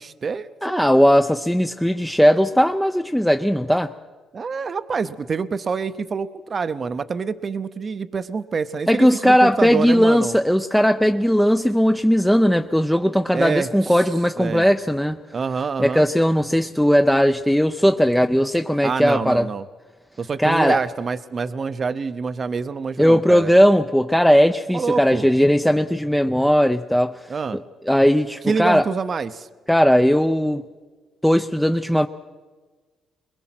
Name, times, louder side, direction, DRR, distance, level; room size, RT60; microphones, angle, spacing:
voice 1, 0.0-0.8 4.3-10.3 13.3-13.7 14.4-14.7 15.3-16.1 18.8-19.7 20.2-23.5 24.7-25.3 27.3-27.6 28.5-29.5, right 5 dB, 40° right, 13 dB, 0.7 m, -26 dB
voice 2, 0.6-3.9 8.9-15.2 15.8-19.5 20.4-20.8 23.0-27.3 27.9-28.9 29.7-30.6 31.2-32.1, equal, ahead, 7 dB, 0.5 m, -18 dB
22.5 x 21.0 x 6.0 m, 1.4 s
cardioid pair, 90°, 0 cm